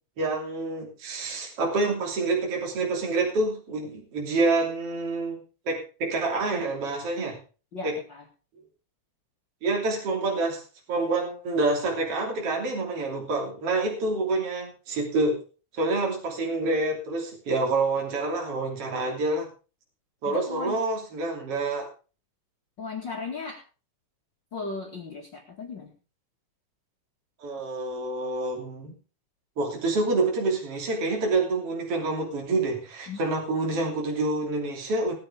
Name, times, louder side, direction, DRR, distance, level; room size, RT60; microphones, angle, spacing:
voice 1, 0.2-5.4 5.7-7.4 7.8-8.0 9.6-10.6 10.9-15.4 15.7-19.5 20.2-21.9 27.4-28.9 29.6-35.1, right 3 dB, 50° right, 0 dB, 3.9 m, -27 dB
voice 2, 7.7-8.2 20.3-20.7 22.8-23.6 24.5-25.9 33.1-33.2, left 4 dB, 40° left, 0 dB, 2.6 m, -36 dB
19.0 x 9.8 x 3.6 m, 0.35 s
omnidirectional pair, 3.6 m